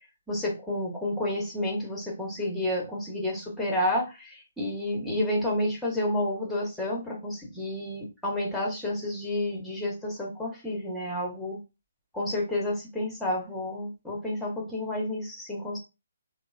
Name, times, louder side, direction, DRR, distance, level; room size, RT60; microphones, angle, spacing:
voice 1, 0.3-11.6 12.1-15.8, left 1 dB, ahead, -2 dB, 1.1 m, -30 dB
2.8 x 2.1 x 2.5 m, 0.27 s
figure-of-eight pair, 145°, 0 cm